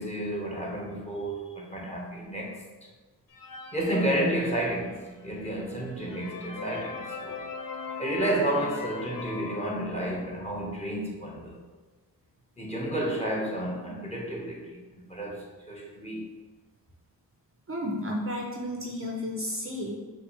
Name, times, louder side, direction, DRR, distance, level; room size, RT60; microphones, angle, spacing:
voice 1, 0.0-2.6 3.7-7.4 8.0-11.5 12.6-14.8 15.1-16.3, right 1 dB, 15° left, -3 dB, 1.3 m, -31 dB
sound 1, 3.3-4.9 5.5-5.6 5.9-10.5, left 4 dB, 55° left, 0.7 m, -39 dB
voice 2, 17.7-19.9, left 1 dB, 30° right, 0 dB, 0.8 m, -32 dB
5.8 x 2.5 x 3.3 m, 1.3 s
cardioid pair, 50°, 41 cm